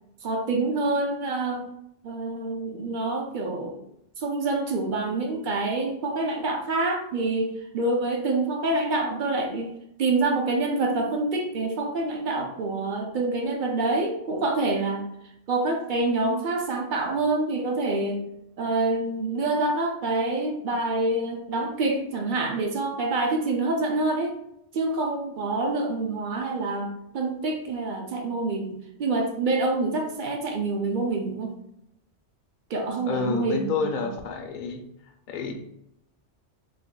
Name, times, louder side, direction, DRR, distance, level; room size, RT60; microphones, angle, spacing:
voice 1, 0.2-1.7 2.0-3.8 4.2-9.7 10.0-15.1 15.5-18.2 18.6-24.4 24.7-31.5 32.7-34.0, right 2 dB, 55° right, 3 dB, 0.6 m, -26 dB
voice 2, 33.1-34.8 35.3-35.5, left 5 dB, 55° left, 4 dB, 0.6 m, -29 dB
3.3 x 2.1 x 3.7 m, 0.78 s
omnidirectional pair, 1.2 m